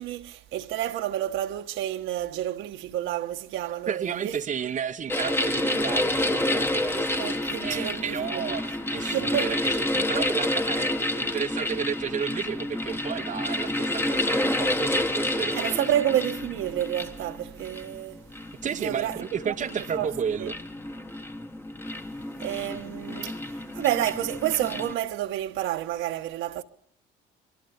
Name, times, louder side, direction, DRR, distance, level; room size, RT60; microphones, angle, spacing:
voice 1, 0.0-4.3 7.2-8.6 9.0-9.6 15.5-18.2 18.6-20.1 20.4-20.5 22.4-26.6, right 12 dB, 70° right, 1.4 m, -30 dB
voice 2, 3.9-15.8 18.6-20.6, right 7 dB, 35° right, 0.9 m, -33 dB
sound 1, 5.1-24.9, left 1 dB, 10° left, 1.4 m, -29 dB
27.5 x 23.0 x 5.3 m
supercardioid pair, 75°, 21 cm